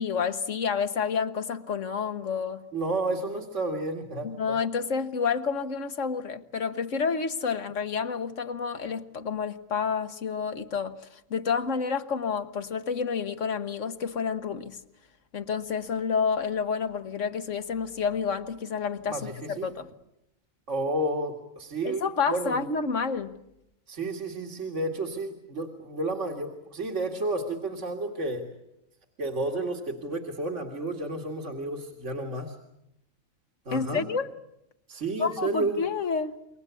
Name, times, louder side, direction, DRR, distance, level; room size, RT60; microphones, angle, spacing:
voice 1, 0.0-2.7 4.2-11.0 11.3-14.8 15.3-19.9 21.8-23.4 33.7-34.3 35.2-36.4, left 5 dB, 75° left, 1.6 m, -29 dB
voice 2, 2.7-4.6 19.1-19.7 20.7-22.6 23.9-28.5 29.2-32.6 33.7-34.0 34.9-35.8, right 2 dB, 70° right, 2.6 m, -31 dB
28.0 x 23.5 x 8.3 m
omnidirectional pair, 1.3 m